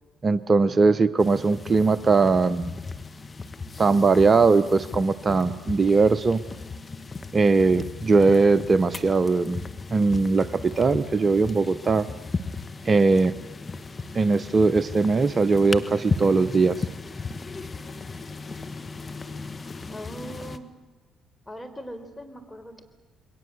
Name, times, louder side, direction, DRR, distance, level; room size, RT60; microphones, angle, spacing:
voice 1, 0.2-2.7 3.8-6.4 7.3-9.6 9.9-12.1 12.8-13.3 14.1-16.9, right 4 dB, 40° right, 15 dB, 0.7 m, -20 dB
sound 1, 1.2-20.6, left 4 dB, 35° left, 1.6 m, -36 dB
voice 2, 19.9-20.7 21.5-22.8, equal, 15° left, 7 dB, 4.3 m, -40 dB
28.0 x 22.0 x 7.9 m, 1.2 s
hypercardioid pair, 50°, 0 cm